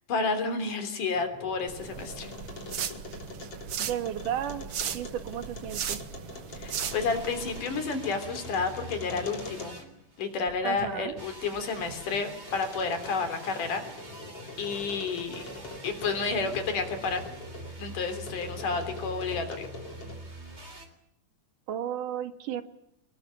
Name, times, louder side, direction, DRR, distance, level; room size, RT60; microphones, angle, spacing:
voice 1, 0.1-2.3 6.5-9.7 10.2-13.8 14.6-15.4 15.8-17.2 17.8-19.7, left 4 dB, 80° left, 8 dB, 5.0 m, -30 dB
sound 1, 1.0-10.0 10.5-17.8 18.2-20.3, left 2 dB, 45° left, 4.5 m, -44 dB
sound 2, 1.7-7.6, right 8 dB, 55° right, 1.9 m, -37 dB
voice 2, 3.8-4.7 4.9-6.0 10.6-11.1 21.7-22.6, right 10 dB, 80° right, 9 dB, 3.2 m, -33 dB
sound 3, 6.8-10.5 11.2-20.9, right 1 dB, 20° right, 3.5 m, -45 dB
25.5 x 21.0 x 9.1 m, 0.75 s
omnidirectional pair, 3.6 m